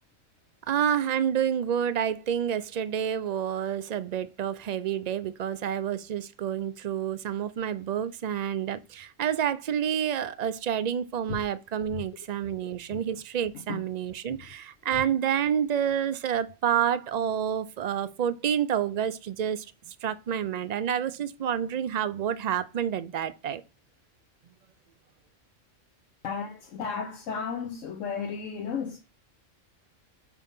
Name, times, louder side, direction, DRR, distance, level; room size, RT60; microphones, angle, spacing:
voice 1, 0.7-19.7 20.0-23.6, right 9 dB, 65° right, 0.4 m, -29 dB
voice 2, 26.2-29.0, left 6 dB, 85° left, 1.2 m, -34 dB
5.2 x 4.6 x 5.3 m
omnidirectional pair, 1.3 m